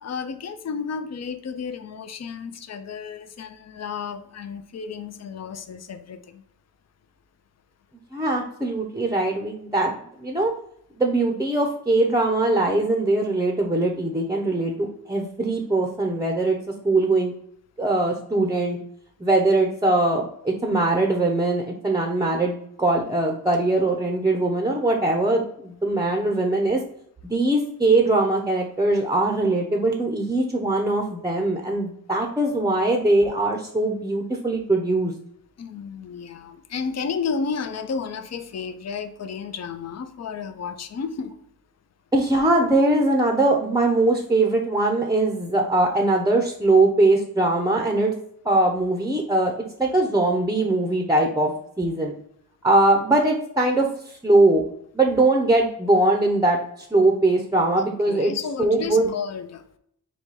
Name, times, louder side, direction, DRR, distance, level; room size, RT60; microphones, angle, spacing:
voice 1, 0.0-6.4 35.6-41.3 57.8-59.6, left 5 dB, 45° left, 9 dB, 0.5 m, -32 dB
voice 2, 8.1-10.5 11.0-16.6 16.8-17.3 17.8-18.8 19.2-26.8 27.2-35.1 42.1-48.1 48.4-49.5 49.8-51.5 51.8-52.1 52.6-54.6 54.9-58.3 58.6-59.1, right 2 dB, 10° right, 1 dB, 0.6 m, -21 dB
4.1 x 2.3 x 4.6 m, 0.70 s
cardioid pair, 75°, 37 cm